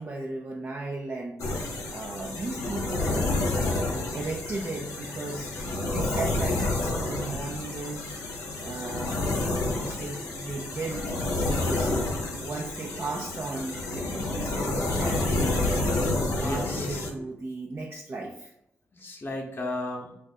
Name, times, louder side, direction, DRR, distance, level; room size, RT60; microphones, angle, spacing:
voice 1, 0.0-3.2 4.1-5.5 5.9-8.1 8.6-12.0 12.4-16.0 16.4-18.5, right 3 dB, 45° right, -1 dB, 0.5 m, -36 dB
sound 1, 1.4-17.1, left 2 dB, 90° left, 0.6 m, -29 dB
voice 2, 16.2-17.3 18.9-20.1, left 1 dB, 40° left, -1 dB, 0.8 m, -35 dB
2.6 x 2.4 x 3.9 m, 0.80 s
supercardioid pair, 45°, 5 cm